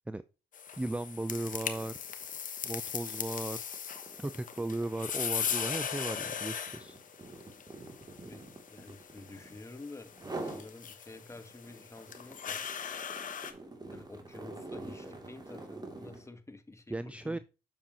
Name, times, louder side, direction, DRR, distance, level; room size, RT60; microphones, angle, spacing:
sound 1, 0.5-13.5, left 7 dB, 55° left, 1.1 m, -39 dB
sound 2, 0.7-0.9 1.2-9.7 10.1-10.7 11.1-16.3, right 2 dB, 25° right, 2.5 m, -46 dB
voice 1, 0.8-1.9 2.6-3.6 4.2-7.0 16.9-17.4, right 2 dB, 10° right, 0.4 m, -36 dB
voice 2, 8.2-12.6 13.9-17.4, left 2 dB, 15° left, 1.4 m, -50 dB
7.6 x 6.7 x 2.9 m
supercardioid pair, 60°, 16 cm